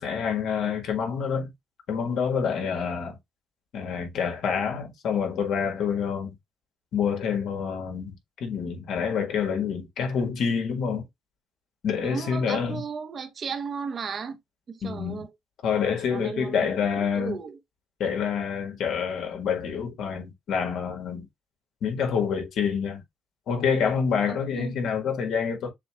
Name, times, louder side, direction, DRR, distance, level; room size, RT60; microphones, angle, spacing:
voice 1, 0.0-1.5 1.9-3.2 3.7-6.3 6.9-8.1 8.4-11.1 11.8-12.8 14.8-15.2 15.6-17.4 18.0-21.3 21.8-23.0 23.5-25.7, left 6 dB, 75° left, 1.6 m, -27 dB
voice 2, 12.0-14.4 14.7-15.3 16.1-16.7 17.0-17.6 24.3-24.7, right 6 dB, 50° right, 0.8 m, -35 dB
6.7 x 2.3 x 2.9 m
cardioid pair, 90°, 0 cm